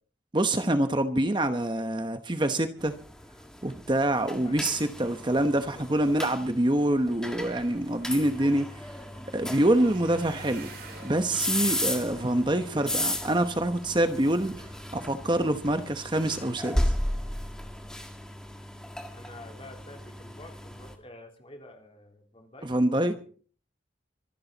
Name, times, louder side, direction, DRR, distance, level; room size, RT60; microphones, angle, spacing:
voice 1, 0.3-2.9 3.6-8.8 9.3-10.7 11.0-14.7 14.9-16.9 22.6-23.1, right 1 dB, 25° right, 8 dB, 1.0 m, -26 dB
sound 1, 2.8-21.0, left 1 dB, 5° left, 1.8 m, -35 dB
voice 2, 5.4-6.1 9.7-10.0 19.1-23.2, left 1 dB, 30° left, 3 dB, 3.5 m, -49 dB
sound 2, 7.6-13.7 14.3-14.7 15.1-15.3 15.6-15.7, right 4 dB, 55° right, 4.5 m, -51 dB
25.5 x 11.5 x 4.0 m, 0.43 s
head